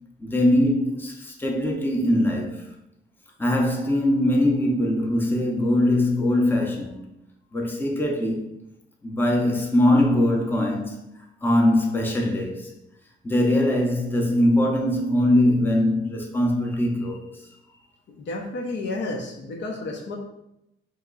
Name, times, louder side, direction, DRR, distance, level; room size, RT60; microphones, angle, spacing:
voice 1, 0.2-2.7 3.4-7.0 7.5-8.5 9.0-11.0 11.4-12.7 13.2-17.4, left 1 dB, 10° left, 0.7 m, -22 dB
voice 2, 18.2-20.2, left 2 dB, 60° left, 0.8 m, -31 dB
3.6 x 3.0 x 3.7 m
cardioid pair, 105°, 20 cm